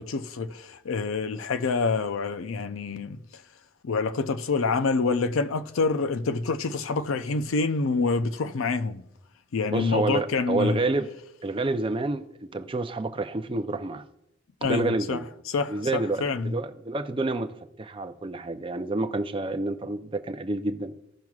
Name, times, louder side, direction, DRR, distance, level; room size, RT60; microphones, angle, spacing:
voice 1, 0.0-3.4 3.8-9.0 9.5-10.8 14.6-16.6, left 4 dB, 85° left, 0.5 m, -27 dB
voice 2, 9.7-11.1 11.4-14.0 14.6-15.3 15.7-20.9, right 2 dB, 25° right, 0.5 m, -29 dB
15.5 x 6.0 x 2.4 m
head